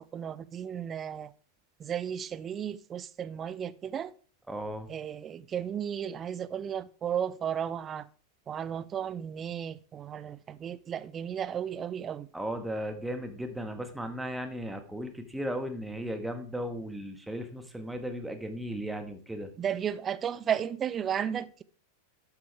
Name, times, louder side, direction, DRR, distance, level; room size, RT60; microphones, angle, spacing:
voice 1, 0.0-1.3 1.8-4.1 4.9-8.1 8.5-12.3 19.6-21.6, right 8 dB, 25° right, 0.5 m, -34 dB
voice 2, 4.5-4.9 12.3-19.5, equal, 5° right, 1.5 m, -36 dB
12.0 x 8.0 x 3.4 m
figure-of-eight pair, 90°, 0 cm